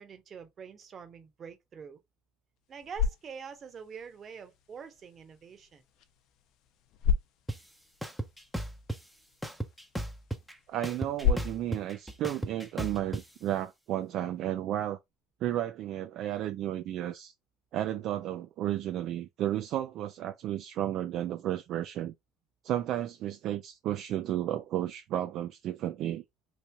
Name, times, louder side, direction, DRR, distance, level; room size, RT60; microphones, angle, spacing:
voice 1, 0.0-2.0 2.7-5.8, right 6 dB, 40° right, 1.1 m, -45 dB
sound 1, 2.6-13.7, left 7 dB, 65° left, 0.6 m, -36 dB
sound 2, 7.5-7.6 8.0-9.0 9.4-10.5 10.8-13.2, right 1 dB, ahead, 0.8 m, -35 dB
voice 2, 10.7-15.0 15.4-17.3 17.7-22.1 22.6-26.2, right 12 dB, 60° right, 0.4 m, -33 dB
3.1 x 2.7 x 3.4 m
supercardioid pair, 95°, 0 cm